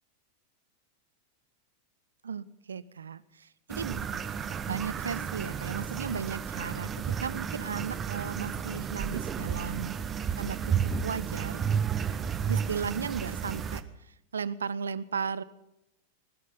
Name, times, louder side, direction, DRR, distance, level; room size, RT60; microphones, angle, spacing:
voice 1, 2.2-4.0 4.7-10.0 10.4-11.6 12.5-13.8 14.3-15.4, right 6 dB, 70° right, 20 dB, 0.6 m, -35 dB
sound 1, 3.7-13.8, right 7 dB, 25° right, 0.9 m, -32 dB
19.5 x 12.5 x 5.7 m, 0.89 s
figure-of-eight pair, 90°, 0 cm